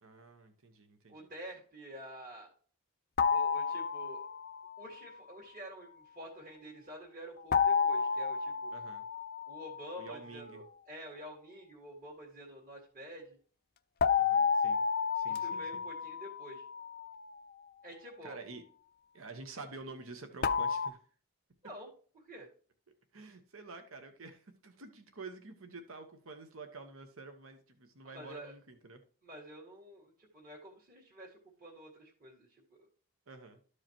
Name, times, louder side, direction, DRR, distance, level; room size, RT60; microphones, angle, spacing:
voice 1, 0.0-1.3 8.7-9.0 10.0-10.6 14.1-14.8 15.1-15.8 18.2-18.6 19.1-21.0 23.1-29.0 33.3-33.6, right 3 dB, 70° right, 6 dB, 1.1 m, -49 dB
voice 2, 1.1-2.5 3.3-4.2 4.8-8.8 9.5-13.4 15.3-16.6 17.8-18.4 21.6-21.9 22.2-22.5 28.0-28.5 29.2-32.5, equal, 40° right, -3 dB, 1.9 m, -49 dB
sound 1, 3.2-4.7 7.5-10.0 14.0-17.2 20.4-20.9, left 6 dB, 45° left, 0.4 m, -31 dB
13.0 x 4.8 x 3.0 m, 0.42 s
head